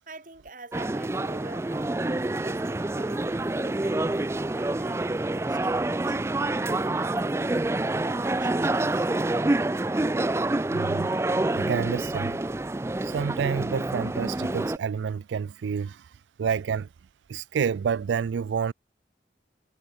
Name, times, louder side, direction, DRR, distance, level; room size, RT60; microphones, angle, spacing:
voice 1, 0.1-6.2 6.7-9.1, right 2 dB, 45° right, 4.1 m, -47 dB
sound 1, 0.7-14.8, right 2 dB, 15° right, 0.3 m, -27 dB
voice 2, 10.7-11.1 11.5-12.4 13.0-16.0 16.4-16.9 17.3-18.7, right 6 dB, 90° right, 0.4 m, -29 dB
head